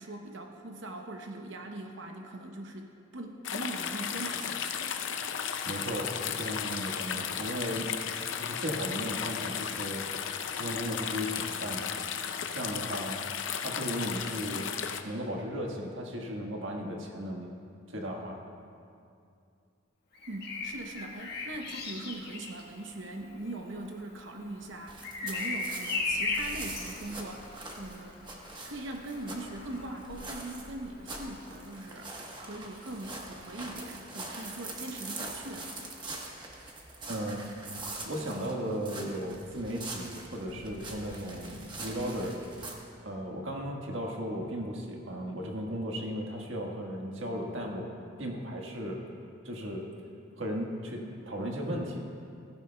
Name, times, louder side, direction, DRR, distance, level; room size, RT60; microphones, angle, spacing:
voice 1, 0.0-4.9 20.3-28.4 28.6-35.8, right 1 dB, 70° right, 3 dB, 0.8 m, -41 dB
sound 1, 3.4-15.0, left 7 dB, 70° left, 0.6 m, -35 dB
voice 2, 5.6-7.9 8.4-10.0 10.5-11.9 12.5-13.2 13.6-14.7 15.0-17.5 17.9-18.4 37.1-37.5 38.0-42.4 43.0-47.9 48.2-49.1 49.4-49.9 50.4-52.0, equal, 85° right, 0 dB, 1.5 m, -36 dB
Bird vocalization bird call bird song, 20.1-31.9 33.7-33.9, left 3 dB, 55° left, 1.4 m, -38 dB
sound 2, 24.9-42.7, right 2 dB, 25° right, 1.1 m, -43 dB
16.0 x 15.0 x 2.3 m, 2.4 s
head